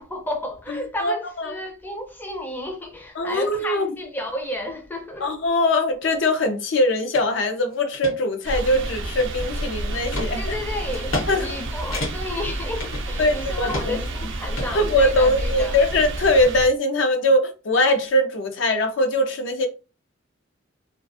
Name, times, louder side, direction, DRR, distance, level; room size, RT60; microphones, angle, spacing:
voice 1, 0.0-5.3 10.4-15.8, left 1 dB, 10° left, 0.4 m, -32 dB
voice 2, 1.0-1.6 3.2-3.9 5.2-10.4 11.3-11.5 13.2-14.0 14.7-19.7, left 1 dB, 65° left, 0.5 m, -21 dB
sound 1, 7.1-7.3 7.7-8.1 8.7-9.6 10.1-10.3 10.9-11.3 11.5-11.6 11.9-12.4 12.8-13.4 13.7-14.1 14.6-15.4, left 2 dB, 80° left, 1.0 m, -31 dB
sound 2, 8.4-16.7, right 1 dB, 65° right, 0.5 m, -30 dB
2.3 x 2.3 x 2.5 m
head